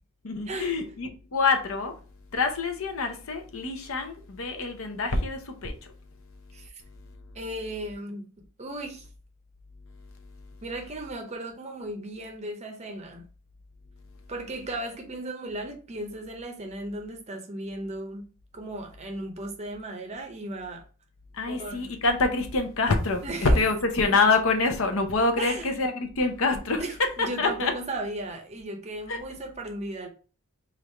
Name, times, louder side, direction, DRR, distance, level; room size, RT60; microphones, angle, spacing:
voice 1, 0.2-2.0 2.3-5.9 21.3-26.8 27.4-27.7 29.1-29.2, left 3 dB, 65° left, 0.7 m, -26 dB
voice 2, 7.3-8.3 8.6-9.1 10.6-13.3 14.3-18.2 18.5-20.8 21.5-21.9 23.2-23.6 24.0-24.3 25.4-25.7 26.8-30.1, right 1 dB, 30° right, 0.6 m, -36 dB
3.2 x 2.5 x 4.2 m
head